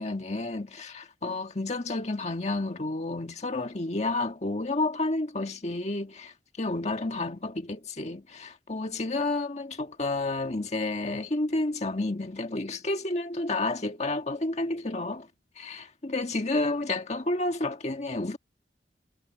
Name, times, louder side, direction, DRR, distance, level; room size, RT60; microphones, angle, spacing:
voice 1, 0.0-15.3 15.6-18.4, left 2 dB, 40° left, 1.6 m, -30 dB
head